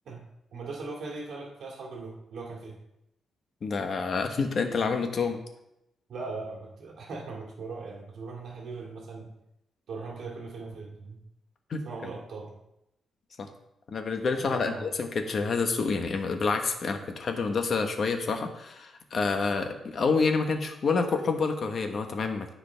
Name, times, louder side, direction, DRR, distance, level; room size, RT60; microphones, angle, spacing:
voice 1, 0.5-2.8 6.1-9.3 9.9-11.2 11.8-12.5 14.4-14.9, right 3 dB, 65° right, -2 dB, 2.1 m, -39 dB
voice 2, 3.6-5.4 11.7-11.8 13.4-13.5 13.9-22.5, left 4 dB, 50° left, 5 dB, 1.1 m, -28 dB
13.5 x 4.9 x 3.4 m, 0.85 s
cardioid pair, 120°, 0 cm